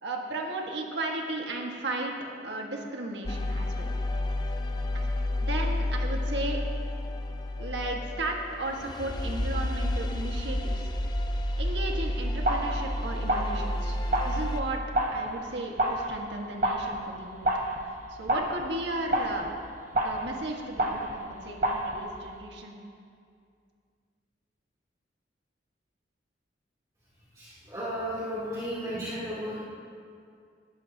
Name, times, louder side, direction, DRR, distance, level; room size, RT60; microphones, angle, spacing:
voice 1, 0.0-2.1 2.4-3.9 4.9-6.6 7.6-10.9 11.5-14.8 15.1-17.5 17.8-19.5 20.0-22.8, right 2 dB, 70° right, 1 dB, 1.7 m, -35 dB
sound 1, 3.2-14.6, left 1 dB, 25° left, 0.7 m, -30 dB
sound 2, 12.4-22.4, right 1 dB, 45° right, 1.3 m, -31 dB
voice 2, 27.3-29.6, equal, 20° right, -11 dB, 3.3 m, -34 dB
20.0 x 14.0 x 2.9 m, 2.3 s
head